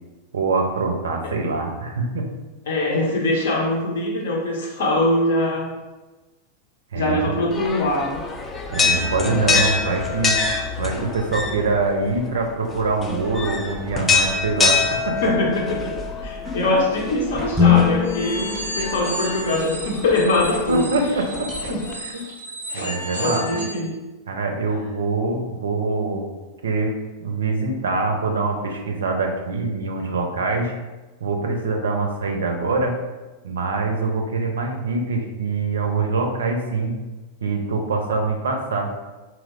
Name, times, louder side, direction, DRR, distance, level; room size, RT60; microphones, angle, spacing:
voice 1, 0.3-2.3 6.9-7.3 8.7-10.4 10.8-15.3 16.4-16.7 20.7-21.5 22.0-22.2 22.7-23.4 24.3-26.3 26.6-30.7 31.2-33.0 33.4-37.0 37.4-38.9, right 3 dB, 65° right, 3 dB, 0.4 m, -24 dB
voice 2, 2.7-5.7 6.9-8.2 15.2-20.9 21.7-21.9 23.2-24.0, left 1 dB, 60° left, -1 dB, 0.7 m, -22 dB
sound 1, 7.5-21.9, left 4 dB, 20° left, 0.3 m, -26 dB
sound 2, 17.5-20.0, left 7 dB, 10° right, 0.7 m, -21 dB
sound 3, 18.0-23.8, right 1 dB, 80° left, 0.9 m, -32 dB
2.9 x 2.0 x 3.7 m, 1.2 s
figure-of-eight pair, 90°, 0 cm